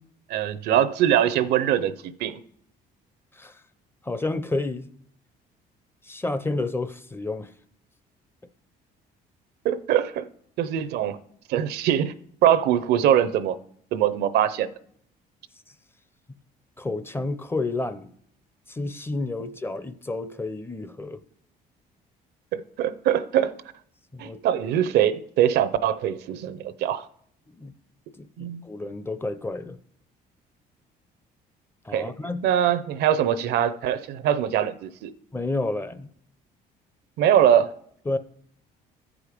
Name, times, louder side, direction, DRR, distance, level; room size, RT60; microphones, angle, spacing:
voice 1, 0.3-2.4 9.6-10.3 10.6-11.2 11.5-12.1 12.4-13.6 13.9-14.7 22.5-23.5 24.2-27.1 28.4-28.6 31.9-32.1 32.4-35.1 37.2-37.7, right 10 dB, 75° right, 0.6 m, -22 dB
voice 2, 4.0-4.9 6.0-7.5 16.3-16.4 16.8-18.1 18.7-21.2 24.1-24.4 27.6-27.7 28.2-29.8 31.8-32.5 35.3-36.1 38.1-38.2, left 2 dB, 15° left, 0.5 m, -30 dB
14.5 x 5.0 x 5.0 m
cardioid pair, 110°, 17 cm